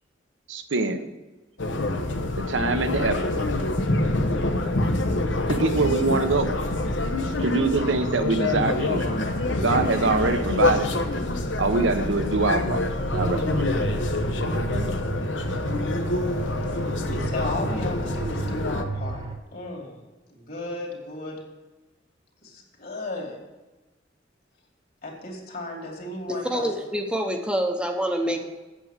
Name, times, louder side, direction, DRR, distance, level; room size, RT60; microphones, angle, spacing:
voice 1, 0.5-1.1 2.5-3.3 5.5-6.6 7.4-9.1 9.6-10.9 11.6-12.9 13.1-13.7, right 3 dB, 85° right, 8 dB, 0.9 m, -24 dB
sound 1, 1.6-18.8, left 2 dB, 75° left, 0.9 m, -26 dB
sound 2, 13.0-19.4, right 3 dB, 30° right, 1.1 m, -33 dB
voice 2, 17.1-20.0 20.3-21.4 22.4-23.4 25.0-26.7 28.2-28.4, left 2 dB, 55° left, 1 dB, 2.5 m, -34 dB
voice 3, 26.3-28.4, equal, 5° right, 3 dB, 0.8 m, -26 dB
8.4 x 7.5 x 7.2 m, 1.1 s
head